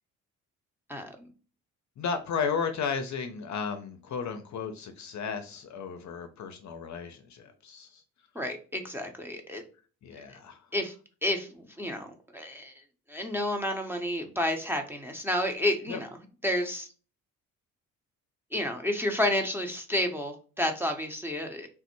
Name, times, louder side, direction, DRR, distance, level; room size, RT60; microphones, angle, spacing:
voice 1, 2.0-8.0 10.0-10.6 15.9-16.0, left 6 dB, 45° left, 7 dB, 0.6 m, -34 dB
voice 2, 8.3-9.6 10.3-10.4 10.7-10.9 11.2-12.7 13.1-16.1 16.4-16.9 18.5-21.7, left 1 dB, 5° right, 3 dB, 0.7 m, -30 dB
3.3 x 2.0 x 3.0 m, 0.38 s
hypercardioid pair, 45°, 42 cm